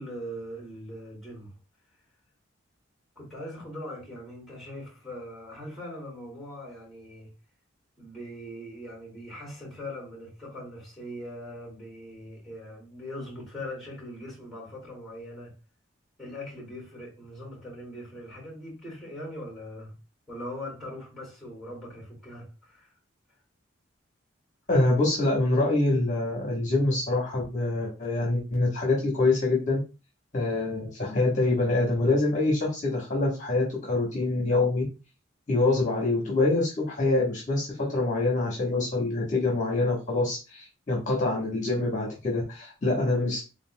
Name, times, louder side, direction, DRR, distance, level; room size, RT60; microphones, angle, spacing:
voice 1, 0.0-1.5 3.2-7.3 8.0-15.6 16.2-19.9 20.3-22.9, left 1 dB, ahead, 2.3 m, -41 dB
voice 2, 24.7-29.8 30.3-34.8 35.5-43.4, left 2 dB, 35° left, 1.2 m, -25 dB
4.0 x 3.9 x 2.2 m
head